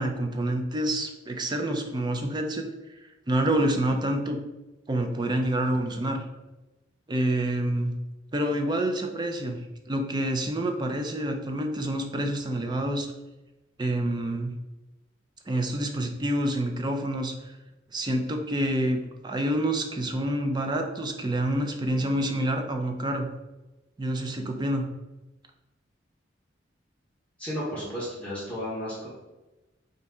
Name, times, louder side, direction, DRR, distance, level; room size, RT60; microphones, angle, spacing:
voice 1, 0.0-2.6 3.3-4.4 4.9-6.2 7.1-7.9 8.3-9.6 9.9-13.1 13.8-14.6 15.5-17.3 17.9-23.3 24.0-24.9, right 1 dB, 25° right, 4 dB, 0.4 m, -27 dB
voice 2, 27.4-29.1, equal, 5° left, -8 dB, 1.0 m, -33 dB
4.1 x 2.6 x 3.4 m, 1.0 s
head